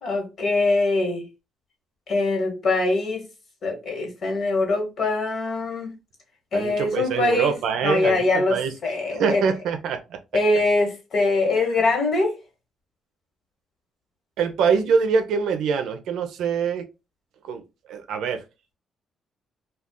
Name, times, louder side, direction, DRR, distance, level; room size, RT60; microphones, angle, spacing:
voice 1, 0.0-1.2 2.1-3.2 3.6-5.9 6.5-7.5 7.8-8.6 8.8-9.4 10.3-12.4, left 2 dB, 55° left, 1.4 m, -23 dB
voice 2, 6.5-8.7 9.1-10.2 14.4-16.8 17.4-18.4, right 6 dB, 80° right, 0.5 m, -24 dB
2.4 x 2.4 x 3.6 m
cardioid pair, 90°, 0 cm